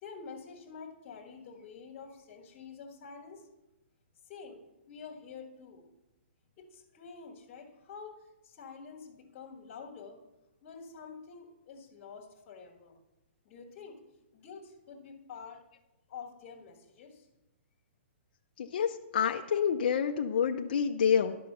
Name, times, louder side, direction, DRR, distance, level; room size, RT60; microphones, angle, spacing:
voice 1, 0.0-3.5 4.3-4.6 4.9-5.8 6.6-10.2 10.6-13.0 13.4-14.0 14.3-15.6 16.1-17.3, left 5 dB, 20° left, -4 dB, 1.3 m, -48 dB
voice 2, 18.6-21.4, left 7 dB, 40° left, 3 dB, 0.4 m, -28 dB
10.5 x 5.6 x 6.5 m, 0.98 s
hypercardioid pair, 180°, 7 cm